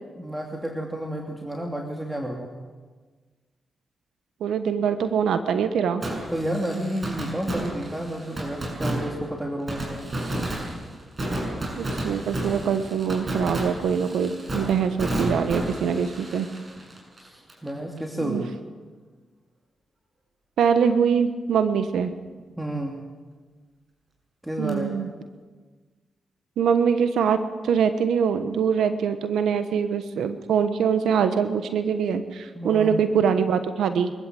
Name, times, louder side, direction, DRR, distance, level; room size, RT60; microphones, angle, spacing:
voice 1, 0.2-2.5 6.3-10.1 16.8-16.9 17.2-18.6 22.6-23.0 24.4-25.0 32.5-33.0, right 1 dB, 10° right, 1 dB, 2.8 m, -31 dB
voice 2, 4.4-6.0 11.8-16.5 18.2-18.4 20.6-22.1 24.6-25.1 26.6-34.1, right 7 dB, 85° right, 10 dB, 1.1 m, -23 dB
Fireworks, 6.0-17.7 18.0-18.1 24.7-24.8, right 1 dB, 40° right, 7.3 m, -32 dB
24.0 x 14.0 x 7.8 m, 1.4 s
cardioid pair, 55°, 0 cm